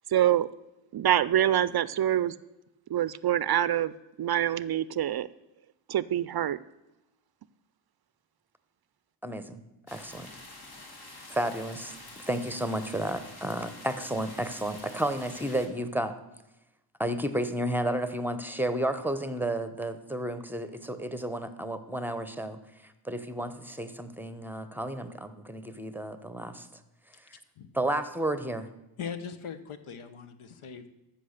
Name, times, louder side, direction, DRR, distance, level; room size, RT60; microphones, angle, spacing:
voice 1, 0.1-0.5 0.9-2.3 2.9-3.9 4.2-5.3 5.9-6.6, right 11 dB, 50° right, 18 dB, 0.5 m, -25 dB
voice 2, 9.2-9.6 9.9-10.3 11.3-11.9 12.3-16.1 17.0-26.7 27.2-27.3 27.7-28.7, right 1 dB, 5° right, 11 dB, 0.9 m, -32 dB
sound 1, 9.9-15.7, left 2 dB, 50° left, 2.3 m, -47 dB
voice 3, 29.0-30.9, left 7 dB, 85° left, 9 dB, 1.1 m, -40 dB
14.0 x 6.1 x 6.5 m, 0.96 s
cardioid pair, 90°, 48 cm